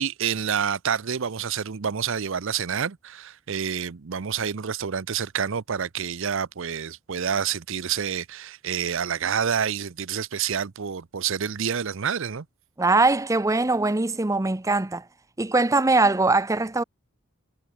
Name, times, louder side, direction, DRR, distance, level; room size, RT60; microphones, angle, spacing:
voice 1, 0.0-12.4, right 7 dB, 65° right, 0.6 m, -28 dB
voice 2, 12.8-15.0 15.4-16.8, right 3 dB, 15° right, 0.6 m, -21 dB
head